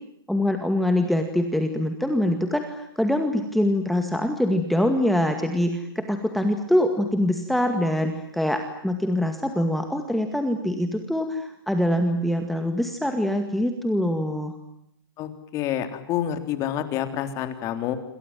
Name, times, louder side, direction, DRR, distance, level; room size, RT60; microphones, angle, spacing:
voice 1, 0.3-14.5, left 1 dB, ahead, 6 dB, 2.1 m, -24 dB
voice 2, 15.2-18.0, left 11 dB, 25° left, 8 dB, 3.6 m, -28 dB
28.0 x 27.0 x 7.5 m, 0.77 s
hypercardioid pair, 155°, 12 cm